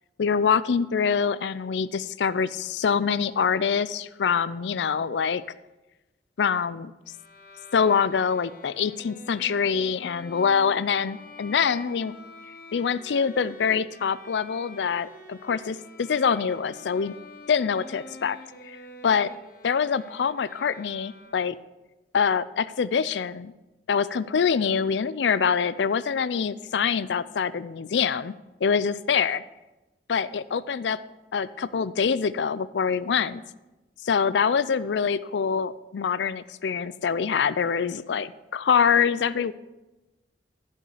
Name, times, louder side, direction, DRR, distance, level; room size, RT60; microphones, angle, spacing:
voice 1, 0.2-5.4 6.4-6.9 7.7-12.1 12.7-17.1 17.5-18.4 18.6-18.8 19.0-19.3 19.6-21.5 22.1-23.5 23.9-28.3 28.6-29.4 30.1-31.0 31.3-33.4 34.0-39.5, left 6 dB, 80° left, 17 dB, 0.4 m, -25 dB
Bowed string instrument, 7.1-21.7, left 2 dB, 55° left, 1.2 m, -47 dB
15.0 x 5.5 x 4.9 m, 1.0 s
head